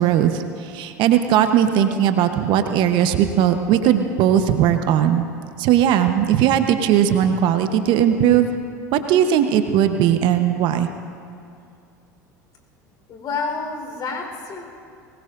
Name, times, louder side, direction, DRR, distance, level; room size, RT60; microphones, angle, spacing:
voice 1, 0.0-5.2 5.6-8.5 8.9-10.9, right 10 dB, 55° right, 8 dB, 1.0 m, -18 dB
voice 2, 13.1-14.7, left 4 dB, 45° left, 2 dB, 4.2 m, -29 dB
23.5 x 20.0 x 2.6 m, 2.4 s
hypercardioid pair, 80°, 10 cm